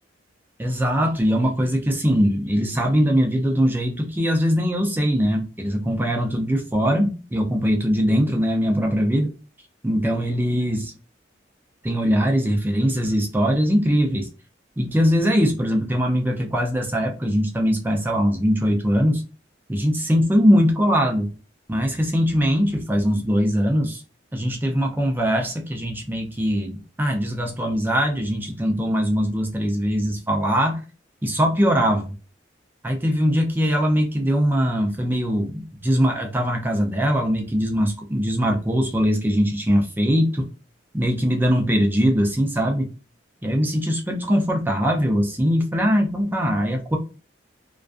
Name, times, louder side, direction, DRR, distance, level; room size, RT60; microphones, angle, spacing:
voice 1, 0.6-9.3 9.8-10.9 11.8-14.3 14.8-19.2 19.7-21.3 21.7-24.0 24.3-30.8 31.2-32.1 32.8-40.5 40.9-42.9 43.4-47.0, equal, 10° right, 0.4 m, -21 dB
2.4 x 2.3 x 2.3 m
head